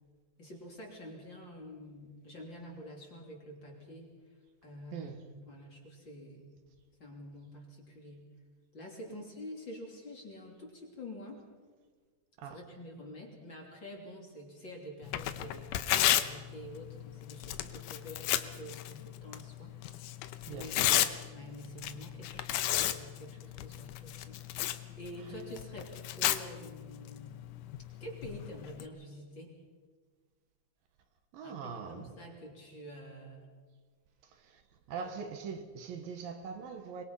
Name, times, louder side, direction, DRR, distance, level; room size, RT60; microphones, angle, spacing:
voice 1, 0.4-4.3 4.6-6.6 7.0-8.3 8.7-11.5 12.4-19.7 20.2-27.4 28.0-29.6 31.4-33.5, equal, 30° left, 3.5 m, -48 dB
Tearing, 15.0-28.9, left 12 dB, 75° left, 2.2 m, -34 dB
voice 2, 20.5-21.0 31.3-32.1 34.5-34.6 34.9-37.0, right 6 dB, 70° right, 3.1 m, -42 dB
24.5 x 22.0 x 5.6 m
omnidirectional pair, 4.3 m